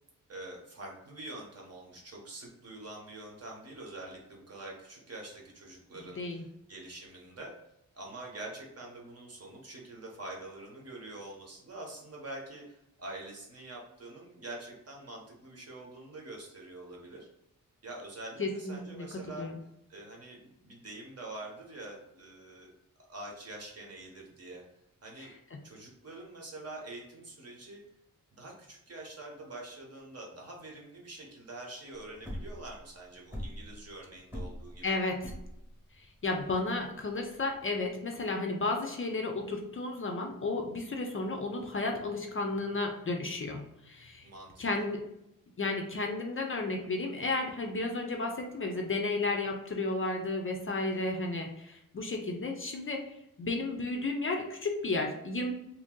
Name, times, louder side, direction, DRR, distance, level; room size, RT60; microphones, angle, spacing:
voice 1, 0.3-7.5 7.9-17.3 17.8-19.5 19.9-22.7 23.1-24.6 25.0-25.3 25.6-27.8 28.3-35.0 44.2-44.8 50.9-51.2, right 2 dB, 45° right, -1 dB, 0.9 m, -45 dB
voice 2, 18.4-19.6 34.8-35.3 36.0-44.3 44.6-45.1 45.6-53.0 53.4-55.5, left 2 dB, 40° left, 2 dB, 0.4 m, -33 dB
sound 1, 32.0-37.9, equal, 5° right, 0.9 m, -42 dB
2.8 x 2.6 x 3.7 m, 0.82 s
wide cardioid pair, 165°, 34 cm